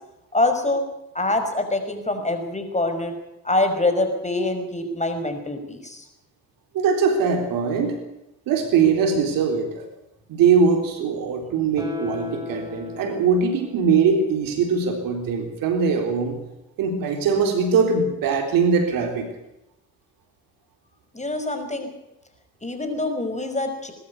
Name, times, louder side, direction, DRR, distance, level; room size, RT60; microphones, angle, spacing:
voice 1, 0.3-0.8 1.1-3.1 3.4-6.0 21.1-21.9 22.6-23.9, left 2 dB, 20° left, 7 dB, 5.5 m, -25 dB
voice 2, 6.7-8.0 8.5-9.9 10.3-16.4 16.8-19.3, right 5 dB, 90° right, 4 dB, 3.9 m, -21 dB
Guitar, 11.7-15.0 15.4-15.5, left 5 dB, 10° right, 4.6 m, -36 dB
20.5 x 13.0 x 9.6 m, 0.90 s
supercardioid pair, 55°, 33 cm